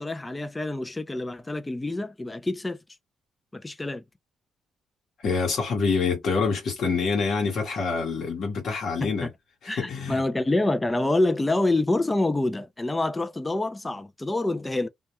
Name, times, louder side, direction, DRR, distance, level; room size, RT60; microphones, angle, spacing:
voice 1, 0.0-2.8 3.5-4.0 9.0-9.3 9.7-14.9, left 2 dB, 10° left, 0.3 m, -26 dB
voice 2, 5.2-9.3 9.6-10.2, left 4 dB, 60° left, 0.9 m, -26 dB
2.2 x 2.2 x 2.8 m
cardioid pair, 150°, 0 cm